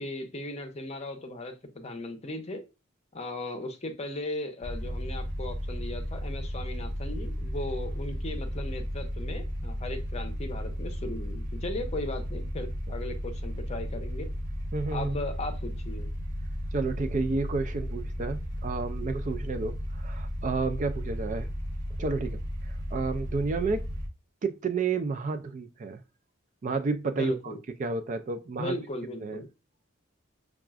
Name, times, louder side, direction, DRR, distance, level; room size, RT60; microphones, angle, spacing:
voice 1, 0.0-2.6 3.1-14.3 14.9-16.1 27.1-27.6 28.6-29.5, left 2 dB, 30° left, 0.6 m, -37 dB
sound 1, 4.6-24.1, equal, 55° right, 1.0 m, -34 dB
voice 2, 14.7-15.2 16.7-21.5 22.0-22.4 22.9-23.8 24.4-26.0 26.6-27.5 27.8-28.8 29.2-29.4, right 4 dB, 40° right, 0.3 m, -31 dB
5.8 x 2.4 x 2.3 m
head